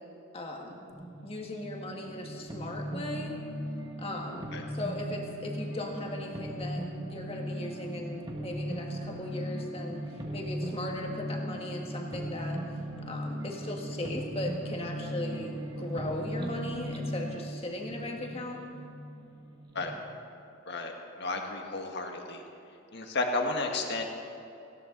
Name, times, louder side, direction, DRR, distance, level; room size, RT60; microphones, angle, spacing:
voice 1, 0.3-0.8 1.2-3.4 4.0-12.6 13.0-18.6, left 1 dB, 25° left, 1 dB, 1.8 m, -38 dB
sound 1, 0.9-20.0, equal, 20° right, 1.5 m, -38 dB
voice 2, 21.2-22.4 22.9-24.0, left 3 dB, 55° left, 2 dB, 1.7 m, -32 dB
18.5 x 17.0 x 4.0 m, 2.7 s
head